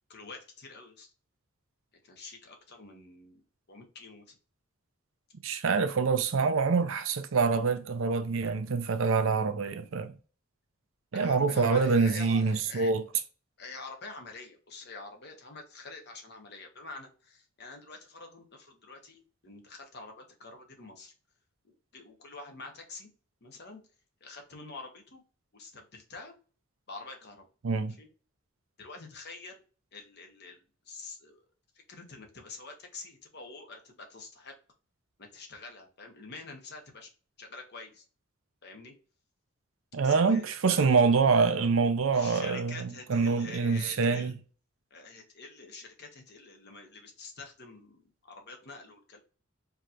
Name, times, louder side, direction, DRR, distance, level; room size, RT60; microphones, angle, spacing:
voice 1, 0.1-1.1 2.0-3.4 3.7-4.4 11.1-12.9 13.6-21.1 21.6-23.1 23.4-23.8 24.2-25.2 25.5-26.3 26.9-27.4 27.8-28.1 28.8-29.6 29.9-31.4 31.7-34.5 35.2-37.1 37.4-38.0 38.6-38.9 40.0-40.9 42.1-44.3 44.9-49.2, left 3 dB, 55° left, 1.1 m, -46 dB
voice 2, 5.4-10.2 11.1-13.0 27.6-28.0 39.9-44.3, right 4 dB, 70° right, 0.5 m, -26 dB
4.7 x 2.9 x 2.5 m
head